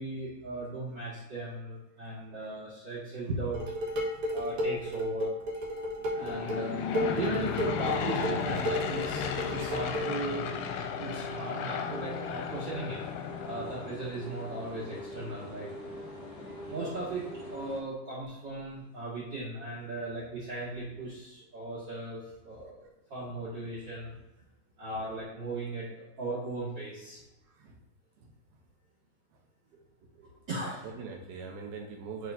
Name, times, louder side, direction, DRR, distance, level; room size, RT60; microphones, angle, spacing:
voice 1, 0.0-3.6 4.3-5.3 6.1-6.8 7.1-10.5 11.0-13.0 13.4-15.7 16.7-17.2 17.5-24.1 24.8-27.2 30.1-30.8, right 2 dB, 40° right, -10 dB, 1.7 m, -37 dB
Dishes pots and pans, 3.5-10.1, left 1 dB, 60° right, 2.2 m, -33 dB
Aircraft / Engine, 6.1-14.1, left 7 dB, 90° left, 2.9 m, -35 dB
sound 1, 6.2-17.8, left 1 dB, 55° left, 2.9 m, -44 dB
voice 2, 27.4-27.8 28.2-28.6 29.3-29.4 30.8-32.3, right 5 dB, 75° right, 2 dB, 2.5 m, -43 dB
11.0 x 3.9 x 2.7 m, 1.0 s
omnidirectional pair, 4.9 m